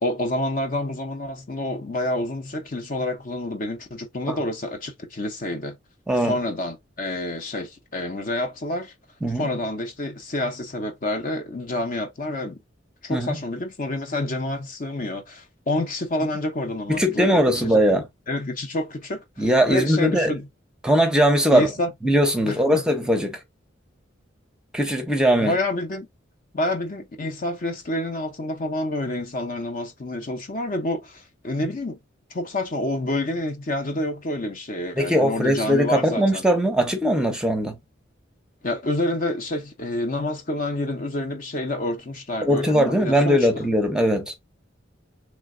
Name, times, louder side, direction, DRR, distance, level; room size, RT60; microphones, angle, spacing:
voice 1, 0.0-5.8 6.2-8.9 9.4-12.6 13.0-17.8 18.3-20.5 21.5-21.9 22.4-22.8 25.4-26.1 26.5-32.0 32.3-36.4 38.6-43.7, left 1 dB, 45° left, 0.7 m, -28 dB
voice 2, 16.9-18.1 19.4-20.3 20.8-21.7 22.0-23.4 24.7-25.5 35.0-37.8 42.4-44.3, equal, 5° right, 0.7 m, -20 dB
3.3 x 2.2 x 3.6 m
head